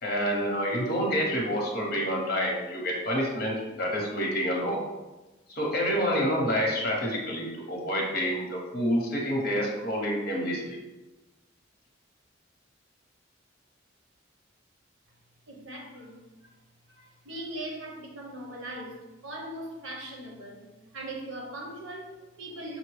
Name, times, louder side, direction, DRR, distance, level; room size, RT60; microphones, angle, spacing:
voice 1, 0.0-4.8 5.5-10.8, equal, 50° left, -2 dB, 1.0 m, -28 dB
voice 2, 15.5-16.2 16.9-22.8, right 1 dB, 90° right, 0 dB, 0.9 m, -40 dB
5.6 x 2.2 x 3.2 m, 1.1 s
head